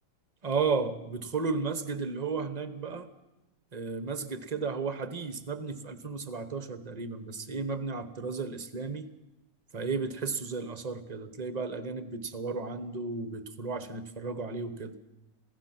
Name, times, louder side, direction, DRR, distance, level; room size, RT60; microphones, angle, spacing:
voice 1, 0.4-3.1 3.7-9.1 9.7-15.0, right 4 dB, 30° right, 11 dB, 0.9 m, -34 dB
27.0 x 16.0 x 5.9 m, 0.96 s
omnidirectional pair, 1.9 m